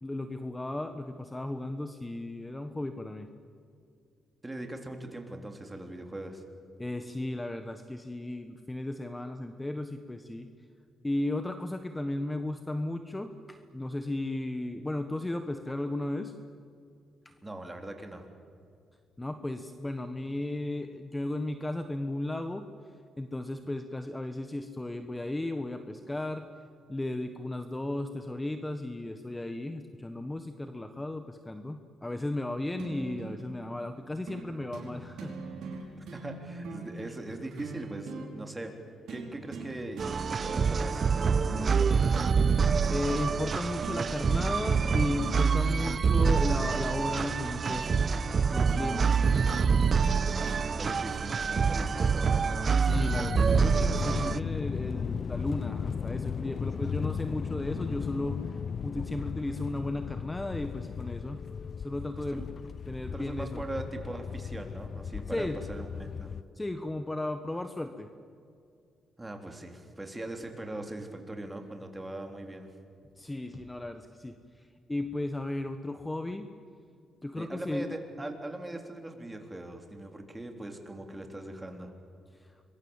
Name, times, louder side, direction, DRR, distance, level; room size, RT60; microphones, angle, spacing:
voice 1, 0.0-3.3 6.8-10.5 11.0-16.3 17.2-17.3 19.2-22.7 23.2-26.5 26.9-35.4 35.7-35.8 42.9-48.2 48.5-49.2 52.8-61.4 61.8-62.5 62.9-63.6 65.3-65.6 66.5-68.1 73.2-74.4 74.9-76.5 77.2-77.9 82.4-82.5, left 1 dB, 15° left, 8 dB, 1.4 m, -35 dB
voice 2, 4.4-6.4 17.4-18.2 36.0-38.8 39.1-42.4 50.6-52.5 62.2-62.5 63.1-66.3 69.2-72.7 77.3-81.9, right 1 dB, 15° right, 4 dB, 3.9 m, -40 dB
sound 1, 32.8-33.4 34.3-34.4 34.7-34.9 35.2-38.3 39.1-39.7 40.0-40.8 41.2-43.0 43.8-44.0 44.3-44.5 44.7-45.4 45.6-47.8 48.7-50.7 51.7-51.8, right 5 dB, 80° right, 4.9 m, -41 dB
sound 2, 40.0-54.4, right 5 dB, 45° right, 0.7 m, -26 dB
sound 3, 52.9-66.4, left 6 dB, 50° left, 0.5 m, -35 dB
26.5 x 22.5 x 7.4 m, 2.4 s
cardioid pair, 85°, 0 cm